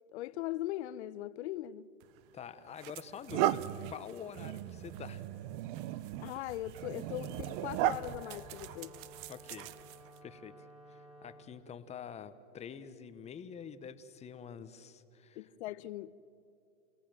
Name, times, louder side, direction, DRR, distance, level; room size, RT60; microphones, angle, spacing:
voice 1, 0.1-1.9 6.2-9.0 15.4-16.1, left 15 dB, 55° left, 0.7 m, -40 dB
sound 1, 2.0-2.2 2.8-10.2, right 13 dB, 40° right, 0.7 m, -37 dB
voice 2, 2.3-5.2 9.3-9.7 10.2-15.4, left 7 dB, 15° left, 0.8 m, -47 dB
Wind instrument woodwind instrument, 7.0-11.5, right 1 dB, 15° right, 1.7 m, -54 dB
29.0 x 17.0 x 7.5 m
hypercardioid pair, 130°, 41 cm